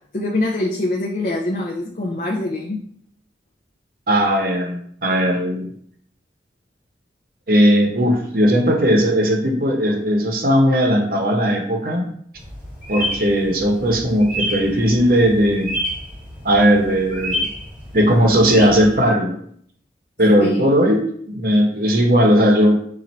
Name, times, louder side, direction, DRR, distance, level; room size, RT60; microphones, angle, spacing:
voice 1, 0.1-2.8 20.4-20.7, left 2 dB, 45° left, -1 dB, 0.5 m, -24 dB
voice 2, 4.1-5.7 7.5-12.1 12.9-15.8 16.4-17.4 17.9-19.4 20.2-22.8, equal, 50° right, 2 dB, 0.8 m, -17 dB
sound 1, 12.4-19.0, equal, 10° right, 1.4 m, -30 dB
4.2 x 2.5 x 4.2 m, 0.63 s
head